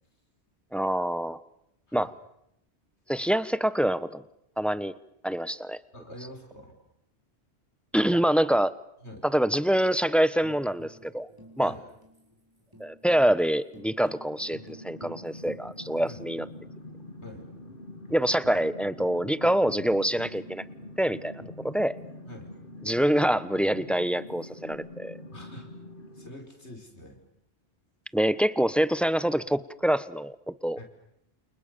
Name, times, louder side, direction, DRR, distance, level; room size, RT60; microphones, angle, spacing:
voice 1, 0.7-1.4 1.9-2.1 3.1-4.2 4.6-4.9 5.2-5.8 7.9-8.7 9.3-11.3 11.6-11.7 12.8-16.5 18.1-20.6 21.0-22.0 22.8-25.2 28.1-30.8, right 1 dB, ahead, 15 dB, 1.0 m, -25 dB
voice 2, 5.9-6.8 8.1-8.2 9.0-9.3 11.6-11.8 16.0-16.2 17.2-17.5 22.2-22.5 25.3-25.7 26.1-27.2 30.8-30.9, left 1 dB, 85° left, 3 dB, 5.5 m, -45 dB
Tambourine, 10.4-16.1 16.4-16.5 16.9-17.3 17.7-17.8 18.1-22.2 23.7-24.7, equal, 20° right, 6.0 m, -52 dB
sound 1, 14.1-26.3, left 1 dB, 55° left, 2.6 m, -45 dB
30.0 x 28.5 x 6.9 m, 0.80 s
omnidirectional pair, 1.1 m